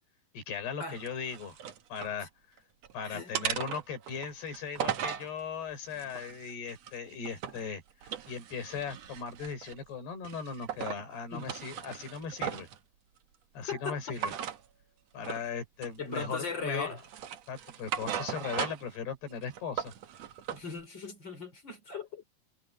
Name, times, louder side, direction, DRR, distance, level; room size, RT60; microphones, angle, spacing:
voice 1, 0.3-1.6 1.9-2.3 2.9-12.7 13.6-14.3 15.1-17.0 17.5-19.9, left 6 dB, 85° left, 7.3 m, -38 dB
sound 1, 1.0-2.2 2.6-2.9 3.3-5.3 5.9-7.7 8.0-9.8 10.2-11.0 11.4-12.8 14.1-14.6 15.2-15.5 15.8-16.5 17.0-19.0 19.3-20.6, right 9 dB, 60° right, 1.9 m, -38 dB
voice 2, 3.0-3.3 11.3-11.5 13.6-14.0 16.0-17.0 20.5-22.2, left 5 dB, 30° left, 4.1 m, -38 dB
omnidirectional pair, 4.5 m